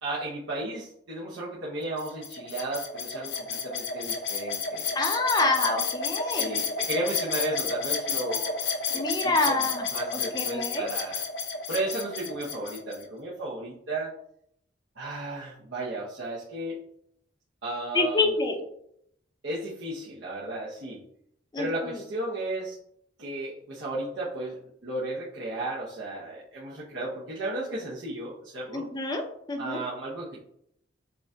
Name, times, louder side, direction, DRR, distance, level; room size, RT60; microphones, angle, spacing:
voice 1, 0.0-4.9 5.4-5.5 6.2-9.5 9.9-11.2 11.7-14.1 15.0-16.8 17.6-18.3 19.4-21.0 21.6-22.8 23.2-24.6 24.8-28.8 29.6-30.4, right 2 dB, 75° right, -7 dB, 0.8 m, -34 dB
sound 1, 2.0-13.0, left 5 dB, 70° left, 0.7 m, -31 dB
voice 2, 4.9-6.6 8.9-10.9 17.9-18.6 21.5-21.7 28.7-29.8, left 3 dB, 20° left, 4 dB, 0.5 m, -27 dB
6.8 x 2.5 x 2.2 m, 0.73 s
head